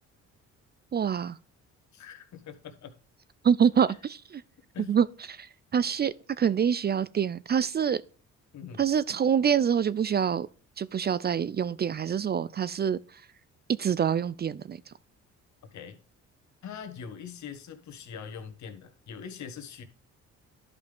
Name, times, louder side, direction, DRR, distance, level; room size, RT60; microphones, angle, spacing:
voice 1, 0.9-1.4 3.4-4.4 4.9-8.0 8.8-10.5 10.8-13.0 13.8-14.8, right 8 dB, 35° right, 0.4 m, -26 dB
voice 2, 1.9-2.9 4.7-4.9 8.5-8.8 15.7-16.0 16.6-19.8, left 7 dB, 70° left, 1.6 m, -42 dB
11.5 x 5.3 x 3.5 m
cardioid pair, 90°, 30 cm